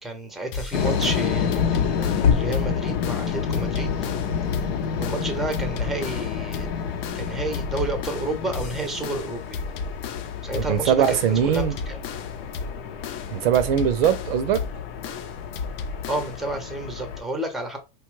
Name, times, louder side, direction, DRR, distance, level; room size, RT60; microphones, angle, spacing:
voice 1, 0.0-3.9 5.0-6.7 7.1-9.6 10.4-12.0 16.1-17.8, right 2 dB, ahead, 0.6 m, -31 dB
sound 1, 0.5-16.5, left 5 dB, 40° left, 0.5 m, -35 dB
sound 2, 0.7-17.2, left 7 dB, 80° left, 0.7 m, -28 dB
voice 2, 10.6-11.7 13.3-14.6, right 9 dB, 75° right, 0.6 m, -21 dB
3.1 x 2.3 x 3.1 m
supercardioid pair, 125°, 29 cm